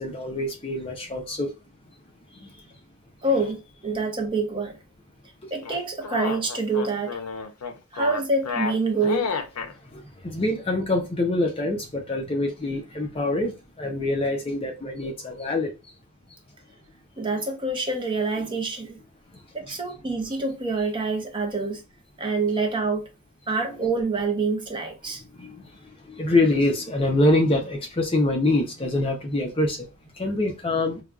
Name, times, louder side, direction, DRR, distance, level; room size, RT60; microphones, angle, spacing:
voice 1, 0.0-1.5 2.3-2.5 5.4-5.5 9.9-15.7 25.3-29.9 30.1-31.0, left 2 dB, 25° left, 0.5 m, -25 dB
voice 2, 3.2-4.8 5.5-7.2 7.9-9.4 17.2-19.0 19.5-21.8 22.2-23.1 23.5-25.2, right 3 dB, 20° right, 0.6 m, -26 dB
sound 1, 5.6-9.7, left 5 dB, 85° left, 0.5 m, -31 dB
4.8 x 2.2 x 2.3 m
head